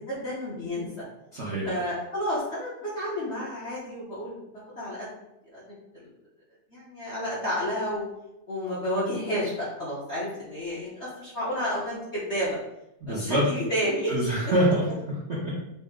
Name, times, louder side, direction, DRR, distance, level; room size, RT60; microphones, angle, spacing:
voice 1, 0.1-0.9 1.6-4.4 4.8-5.1 5.5-5.6 5.9-6.1 6.7-8.0 8.5-12.6 13.1-14.1, equal, 50° left, -8 dB, 0.8 m, -30 dB
voice 2, 1.3-1.7 13.0-13.5 14.1-15.5, right 1 dB, 55° right, -8 dB, 0.7 m, -26 dB
4.2 x 2.1 x 3.6 m, 0.88 s
omnidirectional pair, 2.2 m